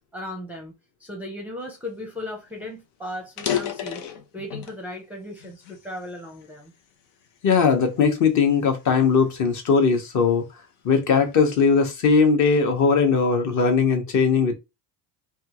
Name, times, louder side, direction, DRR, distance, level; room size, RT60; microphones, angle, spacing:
voice 1, 0.1-0.7 1.0-6.7, left 1 dB, 5° right, 0.5 m, -36 dB
sound 1, 2.2-2.3 2.6-2.7 3.2-4.8 5.4-6.7 7.2-7.5 8.1-10.2, left 10 dB, 85° left, 0.9 m, -32 dB
voice 2, 7.4-10.4 10.8-14.6, left 5 dB, 40° left, 0.9 m, -19 dB
3.4 x 2.4 x 2.9 m
cardioid pair, 145°, 43 cm